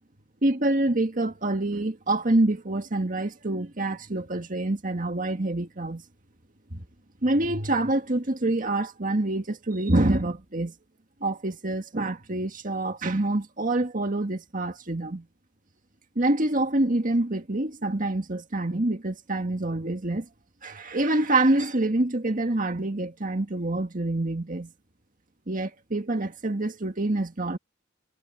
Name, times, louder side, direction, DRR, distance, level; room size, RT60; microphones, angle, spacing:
voice 1, 0.4-6.0 6.7-6.8 7.2-10.7 11.2-15.3 16.2-20.3 20.6-24.7 25.5-27.6, right 2 dB, 40° right, 1.9 m, -26 dB
head